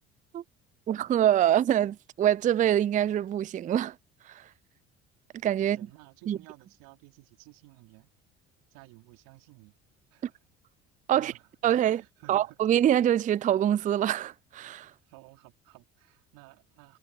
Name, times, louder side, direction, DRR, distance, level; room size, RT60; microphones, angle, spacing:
voice 1, 0.9-4.0 4.3-4.4 5.4-5.8 6.3-6.4 11.1-11.3 11.6-12.0 12.3-14.9, right 11 dB, 25° right, 0.4 m, -25 dB
voice 2, 5.6-8.1 8.7-9.7 10.1-10.4 11.2-12.6 15.1-17.0, right 24 dB, 70° right, 3.3 m, -54 dB
hypercardioid pair, 60°, 34 cm